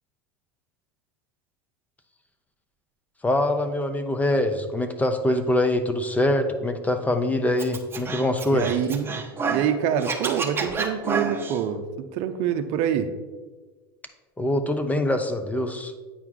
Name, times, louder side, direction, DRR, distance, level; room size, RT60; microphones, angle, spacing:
voice 1, 3.2-8.7 14.4-15.9, left 1 dB, 10° left, 8 dB, 0.6 m, -24 dB
Scratching (performance technique), 7.6-9.7 10.0-11.6, right 5 dB, 20° right, 0.9 m, -29 dB
voice 2, 8.5-9.2 9.5-13.1, right 9 dB, 55° right, 8 dB, 0.6 m, -26 dB
8.6 x 4.5 x 3.7 m, 1.3 s
hypercardioid pair, 100°, 13 cm